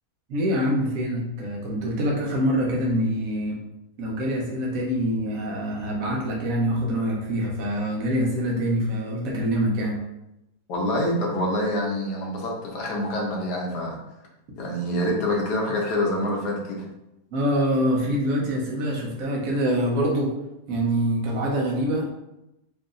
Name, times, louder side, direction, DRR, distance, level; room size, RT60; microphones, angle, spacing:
voice 1, 0.3-3.6 4.0-10.0 17.3-20.3 20.7-22.1, equal, 65° right, -2 dB, 1.2 m, -25 dB
voice 2, 10.7-14.0 14.6-16.8, left 1 dB, 85° left, -1 dB, 1.4 m, -26 dB
4.7 x 2.7 x 2.5 m, 0.91 s
omnidirectional pair, 1.7 m